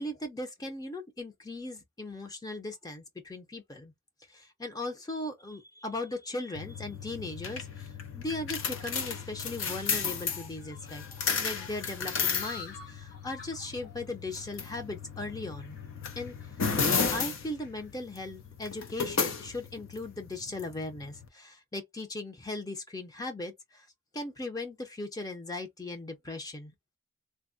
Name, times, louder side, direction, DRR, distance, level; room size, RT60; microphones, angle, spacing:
voice 1, 0.0-3.9 4.3-11.0 11.4-15.8 16.2-16.4 16.8-23.9 24.1-26.7, left 2 dB, 20° left, 0.5 m, -38 dB
sound 1, 6.6-21.3, left 5 dB, 80° left, 0.6 m, -34 dB
sound 2, 8.2-18.7, left 4 dB, 55° left, 2.1 m, -52 dB
3.3 x 2.0 x 2.6 m
head